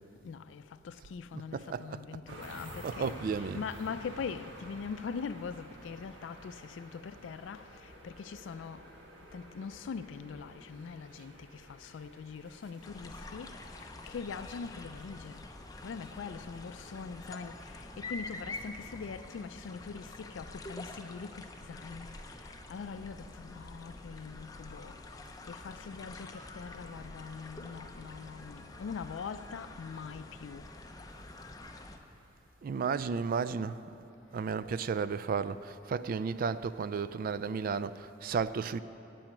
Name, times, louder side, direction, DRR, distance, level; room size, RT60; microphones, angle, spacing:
voice 1, 0.2-8.9 9.3-15.5 15.8-25.0 25.4-30.7, left 5 dB, 75° left, 0.4 m, -42 dB
voice 2, 1.3-2.2 2.8-3.7 32.6-34.1 34.3-38.8, right 5 dB, 50° right, 0.3 m, -33 dB
sound 1, 2.3-19.5, right 1 dB, 70° right, 1.6 m, -52 dB
sound 2, 12.8-32.0, left 2 dB, 20° left, 0.6 m, -47 dB
8.9 x 8.6 x 8.8 m
head